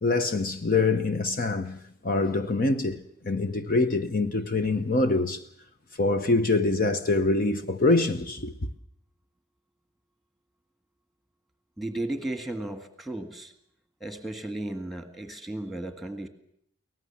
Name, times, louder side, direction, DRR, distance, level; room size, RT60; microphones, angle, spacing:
voice 1, 0.0-1.8 2.0-5.4 6.0-8.5, left 3 dB, 45° left, 0.8 m, -25 dB
voice 2, 11.8-13.5 14.0-16.3, right 1 dB, ahead, 1.8 m, -34 dB
23.5 x 18.5 x 7.1 m
head